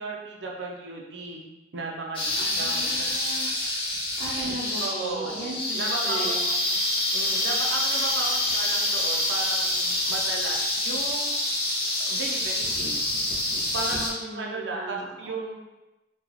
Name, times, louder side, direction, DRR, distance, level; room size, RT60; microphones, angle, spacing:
voice 1, 0.0-1.5 1.7-3.2 4.8-6.4 7.1-11.3 12.1-13.0 13.7-15.6, right 3 dB, 75° right, -1 dB, 0.6 m, -35 dB
sound 1, 2.1-14.1, left 1 dB, 30° left, 0.8 m, -27 dB
voice 2, 2.4-3.5 4.2-6.7 14.2-15.1, right 1 dB, 35° right, -6 dB, 0.7 m, -37 dB
3.7 x 2.3 x 3.1 m, 1.0 s
head